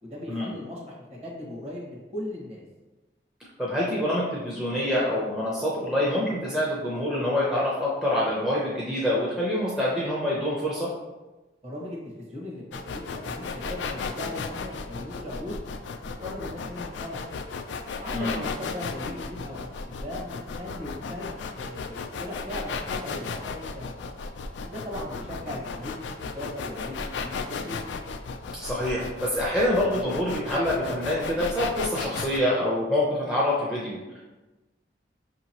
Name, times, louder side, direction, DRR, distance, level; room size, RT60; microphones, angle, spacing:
voice 1, 0.0-2.6 11.6-15.6 16.1-17.3 18.0-23.9 24.6-27.8, left 1 dB, 35° right, -3 dB, 1.1 m, -38 dB
voice 2, 3.6-10.9 18.1-18.4 28.6-34.0, left 1 dB, 5° right, -7 dB, 0.6 m, -26 dB
sound 1, 12.7-32.4, left 4 dB, 85° left, 0.3 m, -35 dB
5.7 x 2.9 x 2.8 m, 1.1 s
head